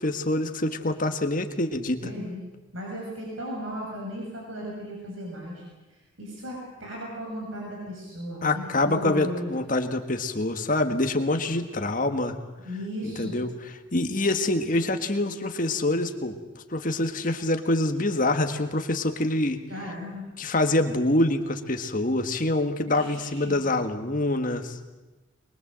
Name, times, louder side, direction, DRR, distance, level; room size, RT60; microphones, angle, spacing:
voice 1, 0.0-2.0 8.4-12.4 13.0-16.4 16.7-19.6 20.4-24.9, left 2 dB, 40° left, 7 dB, 1.7 m, -26 dB
voice 2, 2.0-2.4 2.7-5.6 5.9-9.5 12.6-13.4 19.7-20.3 22.8-23.5, equal, 80° right, -3 dB, 7.0 m, -36 dB
23.5 x 22.5 x 7.7 m, 1.1 s
head